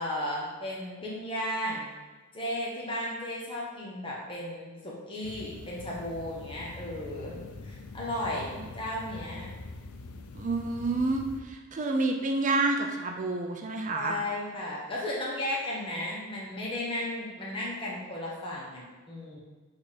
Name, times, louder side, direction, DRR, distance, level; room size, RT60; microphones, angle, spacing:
voice 1, 0.0-1.9 2.3-9.5 13.9-19.4, left 1 dB, 25° left, -5 dB, 1.1 m, -35 dB
sound 1, 5.2-11.4, left 3 dB, 90° left, 0.5 m, -44 dB
voice 2, 10.3-14.2, right 2 dB, 35° right, 3 dB, 0.4 m, -29 dB
7.7 x 3.5 x 4.2 m, 1.3 s
head